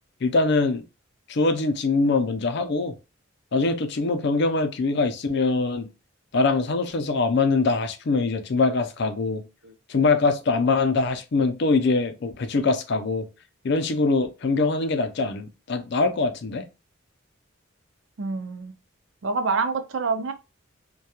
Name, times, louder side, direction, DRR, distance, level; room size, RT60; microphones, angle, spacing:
voice 1, 0.2-0.8 1.3-2.9 3.5-5.9 6.3-9.4 9.9-13.3 13.6-16.6, left 3 dB, 55° left, 0.5 m, -23 dB
voice 2, 18.2-18.7 19.2-20.3, right 4 dB, 70° right, 0.5 m, -26 dB
2.9 x 2.2 x 2.2 m
head